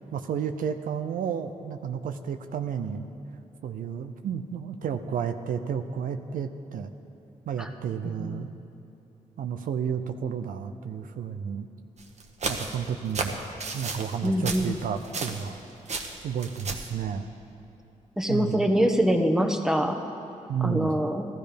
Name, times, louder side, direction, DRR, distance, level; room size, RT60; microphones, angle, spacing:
voice 1, 0.1-3.0 3.6-6.9 7.5-8.5 9.4-11.7 12.4-13.4 13.7-15.6 16.2-17.3 18.3-18.7 20.5-20.9, right 7 dB, 80° right, 8 dB, 0.6 m, -31 dB
sound 1, 12.0-15.6 15.9-16.9, right 4 dB, 55° right, 1.3 m, -33 dB
voice 2, 14.2-14.8 18.2-20.0 20.6-21.2, equal, 5° right, 4 dB, 1.2 m, -24 dB
14.0 x 13.0 x 5.2 m, 2.8 s
cardioid pair, 65°, 14 cm